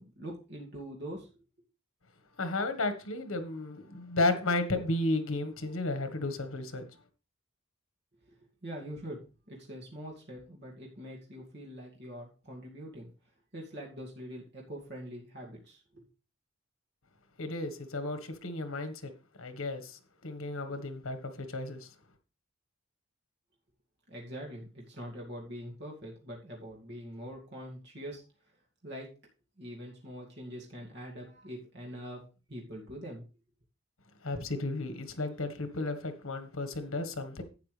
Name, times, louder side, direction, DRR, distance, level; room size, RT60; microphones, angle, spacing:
voice 1, 0.0-1.3 8.3-9.2 9.5-13.1 13.5-16.1 24.1-28.2 28.8-29.1 29.6-32.2 32.5-33.3, equal, 55° right, 2.3 m, -44 dB
voice 2, 2.4-6.8 17.4-19.1 19.4-21.9 34.2-37.4, left 2 dB, 85° left, 1.5 m, -33 dB
11.5 x 8.4 x 3.3 m
head